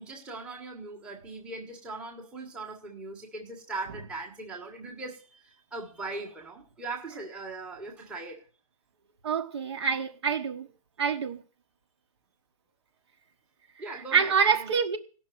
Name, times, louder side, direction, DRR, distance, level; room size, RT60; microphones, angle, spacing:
voice 1, 0.0-8.4 13.8-14.7, right 3 dB, 5° right, 1.4 m, -39 dB
voice 2, 9.2-10.7 11.0-11.4 13.9-15.0, right 6 dB, 50° right, 1.4 m, -26 dB
16.5 x 6.1 x 9.3 m
hypercardioid pair, 170°, 19 cm